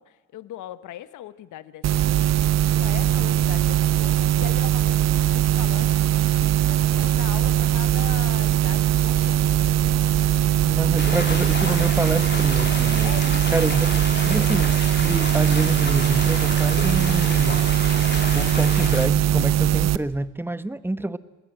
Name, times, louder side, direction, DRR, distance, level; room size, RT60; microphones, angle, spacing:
voice 1, 0.0-9.6 13.0-14.0, left 12 dB, 80° left, 14 dB, 1.0 m, -40 dB
sound 1, 1.8-20.0, right 12 dB, 60° right, 0.8 m, -20 dB
voice 2, 10.6-13.1 13.5-13.9 14.2-17.7 18.3-21.2, right 1 dB, 5° right, 14 dB, 1.1 m, -27 dB
sound 2, 11.0-19.1, left 4 dB, 35° left, 3.8 m, -31 dB
26.5 x 20.5 x 7.7 m, 1.1 s
cardioid pair, 90°, 30 cm